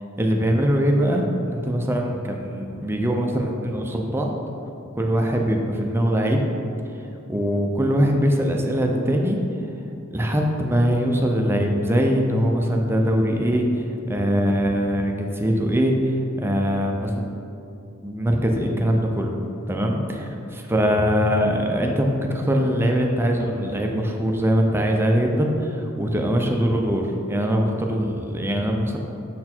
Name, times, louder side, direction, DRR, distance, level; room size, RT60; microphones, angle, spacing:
voice 1, 0.2-4.3 4.9-6.4 7.3-9.4 10.1-17.1 18.0-19.4 19.7-27.0 27.3-29.0, equal, 10° right, 2 dB, 0.5 m, -22 dB
6.5 x 4.2 x 4.3 m, 2.7 s
head